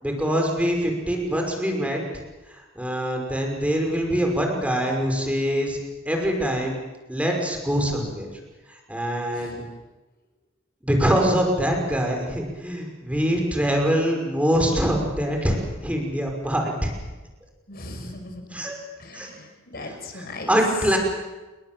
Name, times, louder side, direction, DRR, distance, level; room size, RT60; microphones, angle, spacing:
voice 1, 0.0-2.0 2.8-5.8 6.1-6.8 7.1-8.3 8.9-9.6 10.8-16.9 18.5-18.7 19.1-19.3 20.1-21.0, equal, 5° right, 1 dB, 5.8 m, -24 dB
voice 2, 9.3-9.6 17.7-18.6 19.0-20.6, left 2 dB, 50° left, 5 dB, 5.9 m, -38 dB
29.0 x 22.0 x 7.8 m, 1.2 s
head